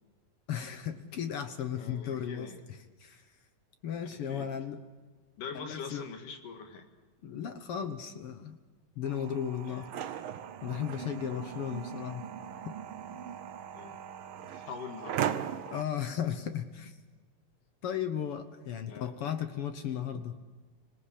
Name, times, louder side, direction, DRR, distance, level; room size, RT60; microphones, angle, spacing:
voice 1, 0.5-2.5 3.0-3.2 3.8-4.8 5.5-6.1 7.2-8.6 9.0-9.9 10.6-12.3 12.6-12.8 15.7-17.0 17.8-20.4, left 9 dB, 60° left, 9 dB, 1.5 m, -35 dB
voice 2, 1.7-2.6 4.2-4.5 5.4-6.9 9.6-9.9 13.7-14.0 14.4-15.4 18.9-19.1, left 6 dB, 80° left, 5 dB, 3.4 m, -43 dB
sound 1, 9.0-15.8, right 9 dB, 90° right, 1.1 m, -38 dB
26.0 x 19.0 x 8.4 m, 1.3 s
omnidirectional pair, 3.7 m